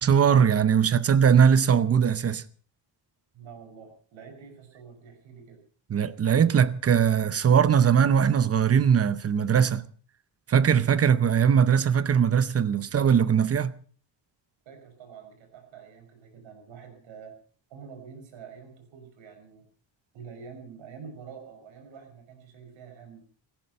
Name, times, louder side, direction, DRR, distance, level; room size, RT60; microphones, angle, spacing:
voice 1, 0.0-2.4 5.9-9.8 10.5-13.7, right 7 dB, 30° right, 0.8 m, -20 dB
voice 2, 3.3-5.6 14.7-17.4 17.7-19.7 20.1-23.3, right 6 dB, 80° right, 5.8 m, -46 dB
17.0 x 15.0 x 5.5 m
cardioid pair, 170°, 46 cm